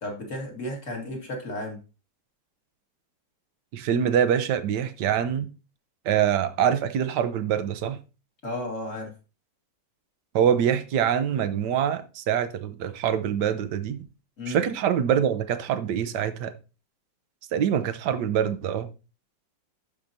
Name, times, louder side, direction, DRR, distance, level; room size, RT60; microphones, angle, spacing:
voice 1, 0.0-1.8 8.4-9.1 14.4-14.6, left 1 dB, 40° left, 2.2 m, -33 dB
voice 2, 3.7-5.5 6.0-8.0 10.3-14.0 14.5-16.5 17.5-18.9, right 9 dB, 70° right, 1.3 m, -24 dB
12.0 x 5.0 x 2.7 m
omnidirectional pair, 2.0 m